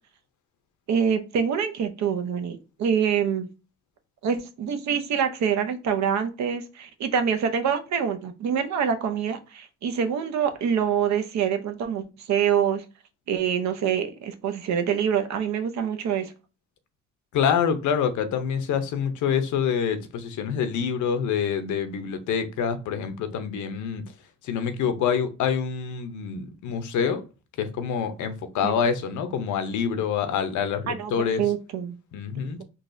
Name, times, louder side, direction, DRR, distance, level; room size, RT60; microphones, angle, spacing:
voice 1, 0.9-3.5 4.2-12.8 13.3-16.3 28.6-28.8 30.9-32.0, right 7 dB, 65° right, 0.6 m, -25 dB
voice 2, 17.3-24.0 24.4-27.2 27.6-31.4 32.1-32.6, left 7 dB, 80° left, 0.6 m, -26 dB
3.9 x 2.3 x 2.5 m
cardioid pair, 90°, 30 cm